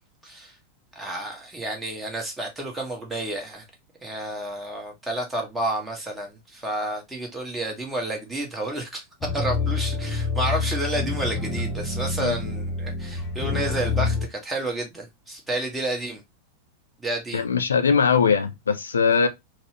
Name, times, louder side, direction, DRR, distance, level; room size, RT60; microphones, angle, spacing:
voice 1, 0.2-0.5 0.9-3.6 4.0-9.0 9.3-16.2 17.0-17.4, right 1 dB, 10° right, 1.2 m, -30 dB
sound 1, 9.2-14.3, left 3 dB, 20° left, 0.9 m, -27 dB
voice 2, 17.3-19.3, left 6 dB, 70° left, 0.4 m, -21 dB
4.2 x 2.1 x 2.8 m
figure-of-eight pair, 90°, 0 cm